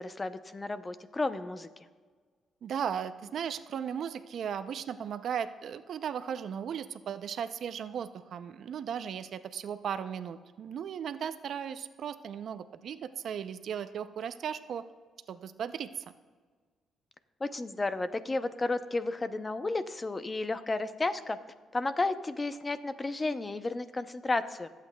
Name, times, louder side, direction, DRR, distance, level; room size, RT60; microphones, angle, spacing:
voice 1, 0.0-1.7 17.4-21.4 21.7-24.7, left 2 dB, 25° left, 11 dB, 0.6 m, -32 dB
voice 2, 2.6-14.8 15.3-16.0, right 8 dB, 65° right, 12 dB, 0.5 m, -36 dB
24.5 x 8.3 x 2.3 m, 1.5 s
cardioid pair, 90°, 0 cm